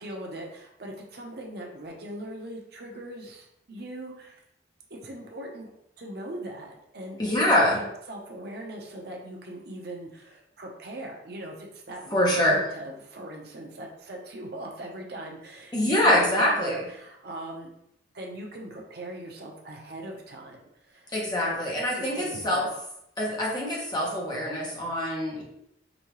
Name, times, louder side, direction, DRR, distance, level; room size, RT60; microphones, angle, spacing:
voice 1, 0.0-4.4 4.9-5.7 6.0-17.7 18.1-21.1 21.4-21.6 21.9-22.7, right 1 dB, 60° right, 0 dB, 0.8 m, -40 dB
voice 2, 7.2-7.8 12.1-12.6 15.7-16.8 21.1-22.7 23.2-25.4, left 1 dB, 25° left, -4 dB, 1.1 m, -24 dB
5.1 x 2.8 x 3.1 m, 0.78 s
head